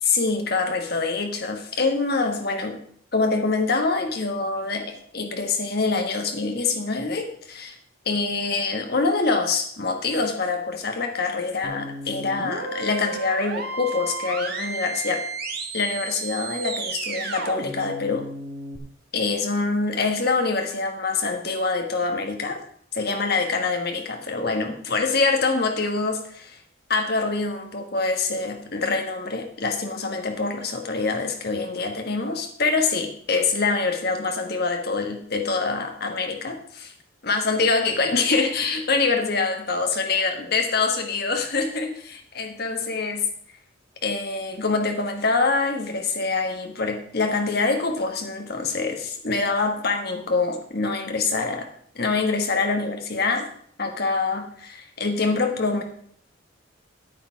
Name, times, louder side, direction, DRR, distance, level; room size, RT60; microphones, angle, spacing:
voice 1, 0.0-2.8 3.1-7.7 8.0-15.2 15.7-18.3 19.1-22.6 22.9-26.6 26.9-36.9 37.2-43.3 44.0-51.7 51.9-53.5 53.8-55.8, left 4 dB, 50° left, 4 dB, 1.4 m, -25 dB
sound 1, 11.6-18.8, right 3 dB, 50° right, 1.3 m, -33 dB
9.1 x 8.5 x 4.6 m, 0.62 s
head